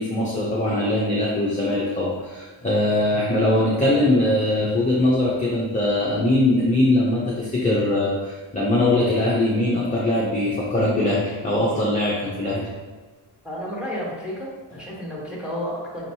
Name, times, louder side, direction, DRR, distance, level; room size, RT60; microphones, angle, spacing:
voice 1, 0.0-12.7, left 1 dB, 15° left, -5 dB, 0.5 m, -21 dB
voice 2, 13.4-16.1, equal, ahead, -5 dB, 1.0 m, -31 dB
5.4 x 2.9 x 2.7 m, 1.3 s
wide cardioid pair, 155°, 46 cm